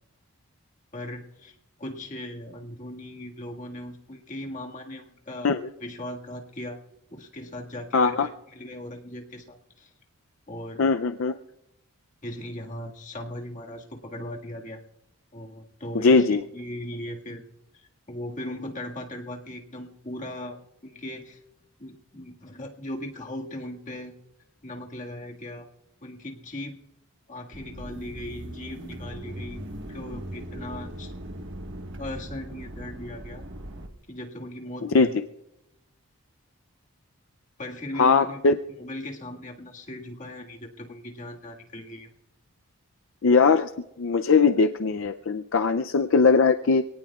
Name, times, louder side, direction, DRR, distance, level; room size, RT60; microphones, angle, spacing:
voice 1, 0.9-6.8 7.1-9.9 10.5-10.8 12.2-14.8 15.3-17.4 17.7-21.4 21.8-24.1 24.6-25.7 26.0-26.8 27.3-29.6 29.9-31.1 32.0-33.4 34.1-35.2 37.6-38.4 38.8-42.1, left 1 dB, 35° left, 0 dB, 1.8 m, -38 dB
voice 2, 7.9-8.3 10.8-11.3 16.0-16.4 34.9-35.1 38.0-38.5 43.2-43.7 44.0-46.8, left 4 dB, 60° left, 8 dB, 0.5 m, -20 dB
sound 1, 27.5-33.9, right 1 dB, 55° right, 1.5 m, -39 dB
26.5 x 18.5 x 2.4 m, 0.89 s
head